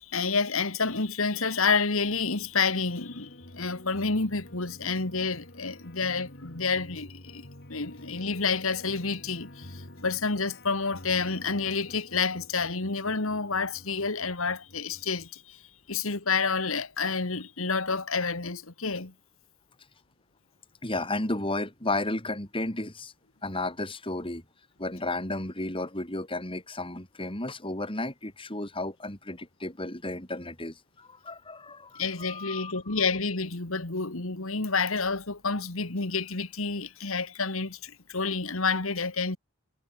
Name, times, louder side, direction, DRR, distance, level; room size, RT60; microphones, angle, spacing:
voice 1, 0.1-7.4 7.7-15.6 15.9-19.1 32.0-39.4, left 4 dB, 70° left, 2.1 m, -29 dB
sound 1, 1.9-15.3, left 1 dB, 50° left, 3.9 m, -49 dB
voice 2, 20.8-23.1 23.4-24.4 24.8-32.7, left 2 dB, 25° left, 4.2 m, -33 dB
head